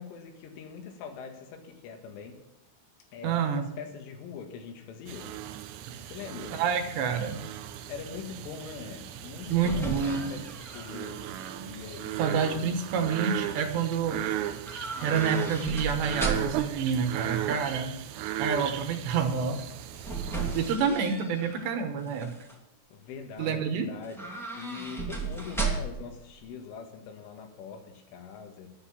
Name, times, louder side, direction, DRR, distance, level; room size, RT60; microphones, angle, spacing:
voice 1, 0.0-2.4 3.1-5.3 5.8-6.6 7.9-11.2 11.6-12.3 22.9-28.7, left 6 dB, 80° left, 5 dB, 4.1 m, -43 dB
voice 2, 3.2-3.6 5.9-6.0 6.5-7.4 9.5-10.3 12.2-14.2 15.0-18.0 18.4-19.6 20.5-22.3 23.4-23.9, right 6 dB, 70° right, 6 dB, 3.2 m, -28 dB
sound 1, 5.1-20.8, right 11 dB, 90° right, 2.4 m, -36 dB
sound 2, 9.2-11.5 11.9-12.4 14.6-16.7 19.5-21.7 22.1-22.6 24.0-26.1 26.4-26.5, right 4 dB, 5° left, 0.3 m, -35 dB
12.0 x 9.6 x 7.3 m, 0.87 s
omnidirectional pair, 5.7 m